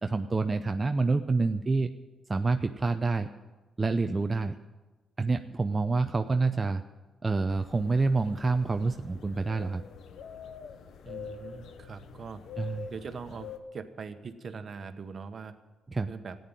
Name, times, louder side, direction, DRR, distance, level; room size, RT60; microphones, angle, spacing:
voice 1, 0.0-1.9 2.3-3.3 3.8-4.6 5.2-6.8 7.2-9.8 12.6-12.9 15.9-16.1, right 3 dB, 25° right, 7 dB, 0.6 m, -27 dB
sound 1, 7.5-13.6, left 7 dB, 75° left, 1.0 m, -45 dB
voice 2, 11.0-12.4 12.9-15.5 16.1-16.4, right 5 dB, 50° right, 9 dB, 1.2 m, -41 dB
14.0 x 9.3 x 9.0 m, 1.2 s
cardioid pair, 80°, 0 cm